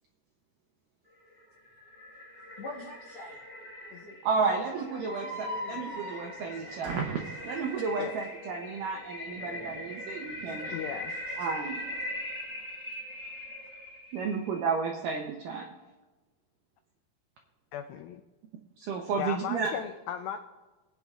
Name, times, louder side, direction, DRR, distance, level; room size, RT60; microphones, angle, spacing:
sound 1, 1.3-14.6, left 1 dB, 15° left, 3.0 m, -41 dB
voice 1, 2.6-3.4 3.8-4.2 4.4-6.0 10.4-10.8 11.1-11.5, left 2 dB, 70° left, -4 dB, 1.5 m, -46 dB
voice 2, 4.2-5.3 5.7-10.8 11.4-11.8 14.1-15.7 18.8-19.7, right 5 dB, 80° right, 1 dB, 1.9 m, -32 dB
sound 2, 5.0-8.2, equal, 60° right, 0.7 m, -41 dB
voice 3, 10.7-11.2 17.7-18.2 19.2-20.4, left 9 dB, 90° left, 6 dB, 2.0 m, -36 dB
21.0 x 9.1 x 2.4 m, 1.2 s
omnidirectional pair, 4.8 m